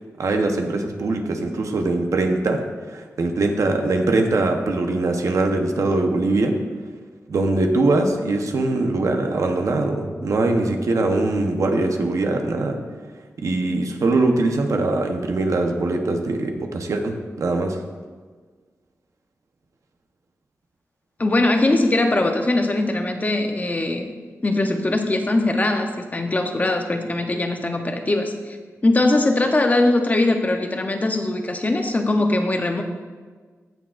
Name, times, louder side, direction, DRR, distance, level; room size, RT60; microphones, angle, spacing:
voice 1, 0.2-6.6 7.3-12.8 13.4-17.8, right 2 dB, 70° right, 4 dB, 0.9 m, -22 dB
voice 2, 21.2-24.2 24.4-28.6 28.8-32.8, left 2 dB, 30° left, 5 dB, 0.7 m, -21 dB
16.0 x 6.2 x 2.5 m, 1.5 s
wide cardioid pair, 110°, 6 cm